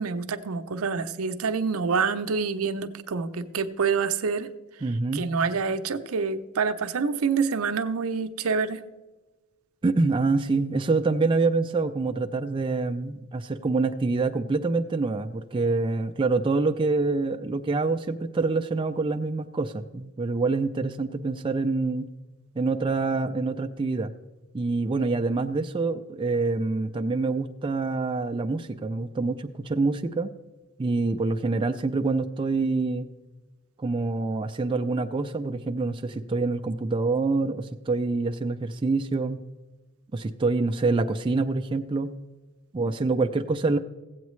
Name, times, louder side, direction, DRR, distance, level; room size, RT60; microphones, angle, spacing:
voice 1, 0.0-4.5 5.1-8.8, right 5 dB, 80° right, 10 dB, 0.6 m, -27 dB
voice 2, 4.8-5.3 9.8-22.1 22.6-24.1 24.5-30.3 30.8-33.1 33.8-39.4 40.1-42.2 42.7-43.8, right 3 dB, 25° right, 6 dB, 0.3 m, -26 dB
15.5 x 8.1 x 3.1 m, 1.2 s
head